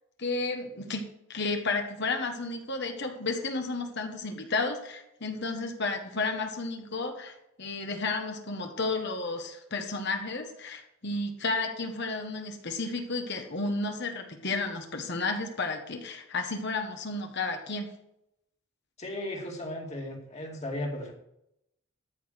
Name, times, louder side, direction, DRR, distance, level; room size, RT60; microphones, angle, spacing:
voice 1, 0.2-17.9, left 3 dB, 55° left, 4 dB, 1.5 m, -32 dB
voice 2, 19.0-21.1, left 1 dB, 30° left, 0 dB, 2.3 m, -35 dB
13.0 x 5.7 x 6.5 m, 0.80 s
head